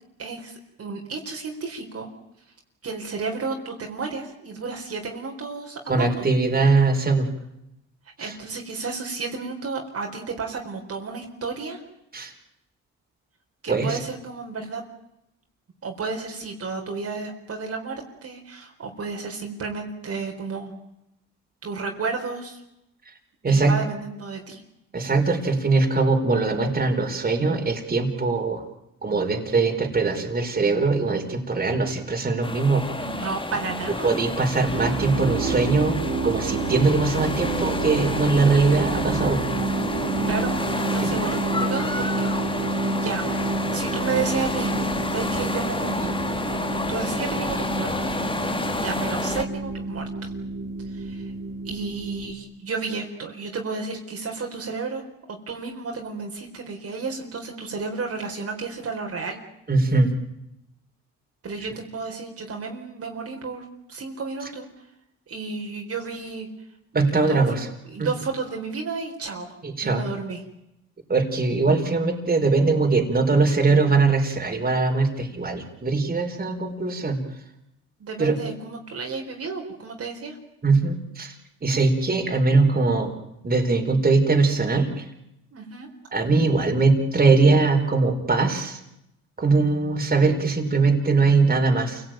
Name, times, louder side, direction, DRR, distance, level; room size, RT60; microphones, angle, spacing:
voice 1, 0.2-2.1 2.8-6.2 8.2-11.8 13.6-14.8 15.8-20.7 21.6-22.6 23.5-24.6 33.0-34.1 40.3-42.7 43.0-43.2 43.7-44.7 45.1-46.1 46.9-47.9 48.8-50.3 50.9-51.2 51.6-59.4 61.4-64.7 65.3-66.5 67.1-67.5 67.9-69.6 69.8-70.4 78.0-80.4 85.5-85.9, right 4 dB, 50° right, 1 dB, 4.3 m, -32 dB
voice 2, 5.9-7.3 8.2-8.3 12.1-12.3 13.7-14.0 23.4-23.7 24.9-28.6 29.0-32.8 34.0-36.0 36.2-39.4 41.0-41.1 59.7-60.1 66.9-67.7 68.0-68.1 69.6-70.0 71.1-77.2 78.2-78.4 80.6-81.3 81.6-83.1 83.4-85.1 86.1-88.8 89.4-92.0, right 3 dB, 30° right, 3 dB, 4.6 m, -21 dB
sound 1, 32.4-49.4, left 2 dB, 15° left, 1.8 m, -30 dB
sound 2, 34.7-52.3, right 3 dB, 70° right, 3.8 m, -29 dB
28.0 x 17.5 x 9.3 m, 0.86 s
cardioid pair, 90°, 30 cm